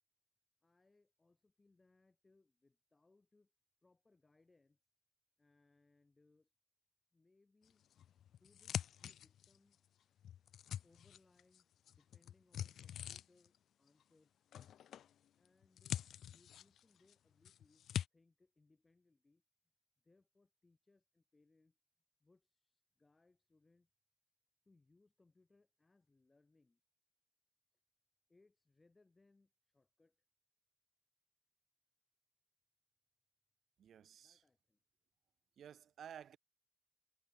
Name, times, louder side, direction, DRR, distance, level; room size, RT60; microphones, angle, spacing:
voice 1, 0.6-3.5 3.8-4.8 5.4-6.5 7.1-7.8 8.4-9.8 10.8-14.4 15.4-16.0 16.3-19.4 20.0-21.8 22.2-23.9 24.7-26.8 27.7-27.8 28.3-30.2 34.2-34.8, left 3 dB, 20° left, 5.2 m, -73 dB
sound 1, 7.9-9.7 10.2-11.6 11.9-13.6 14.5-15.1 15.4-17.1 17.4-18.1, left 10 dB, 85° left, 0.5 m, -45 dB
voice 2, 33.8-34.4 35.6-36.4, right 9 dB, 65° right, 1.9 m, -54 dB
wide cardioid pair, 170°, 0 cm